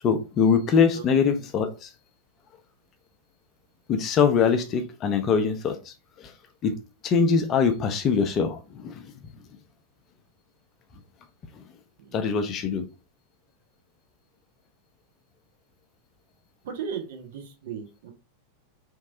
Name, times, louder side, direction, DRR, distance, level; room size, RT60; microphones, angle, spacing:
voice 1, 0.0-1.9 3.9-6.3 6.6-6.7 7.0-9.1 12.1-12.9, left 6 dB, 30° left, 0.5 m, -23 dB
voice 2, 12.0-12.4 16.6-18.1, right 7 dB, 55° right, 0.7 m, -37 dB
3.0 x 2.6 x 2.5 m
figure-of-eight pair, 90°, 0 cm